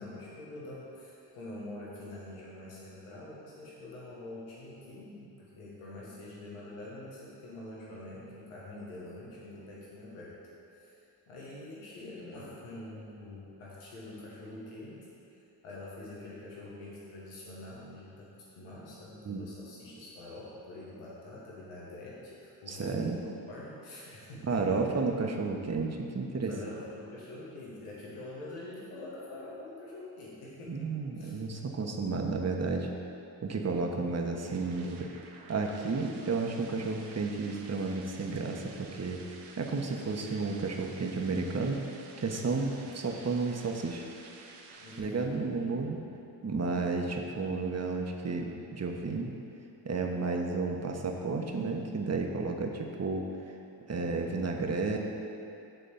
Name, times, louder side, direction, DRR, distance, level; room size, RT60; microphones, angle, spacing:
voice 1, 0.0-10.4 10.7-11.0 11.3-15.1 15.6-25.0 26.4-31.4 42.5-42.9 44.8-45.9, left 1 dB, 85° left, -6 dB, 1.6 m, -45 dB
voice 2, 22.7-23.2 24.5-26.5 30.7-32.9 33.4-35.1 35.5-39.2 39.6-41.8 42.2-44.0 45.0-46.0 46.4-49.3 49.8-53.2 53.9-55.0, right 4 dB, 30° right, 2 dB, 1.1 m, -32 dB
sound 1, 34.0-45.0, right 4 dB, 80° right, 0.9 m, -52 dB
8.0 x 3.7 x 6.7 m, 2.8 s
supercardioid pair, 50°, 49 cm